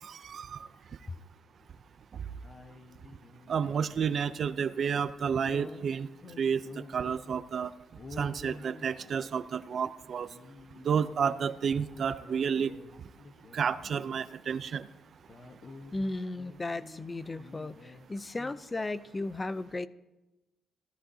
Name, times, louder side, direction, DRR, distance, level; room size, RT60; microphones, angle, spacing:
voice 1, 0.0-0.7 2.1-2.2 3.5-6.1 6.4-7.7 8.1-10.3 10.8-12.8 13.5-14.9, right 7 dB, 55° right, 15 dB, 0.5 m, -31 dB
sound 1, 1.6-2.0 2.4-4.2 5.5-7.4 7.9-9.7 10.2-12.9 13.2-14.4 14.7-14.8 15.1-18.1 18.3-18.6, left 3 dB, 45° left, 1.1 m, -50 dB
voice 2, 15.9-19.9, left 2 dB, 25° left, 15 dB, 0.5 m, -35 dB
17.0 x 14.0 x 2.8 m, 1.0 s
cardioid pair, 90°, 0 cm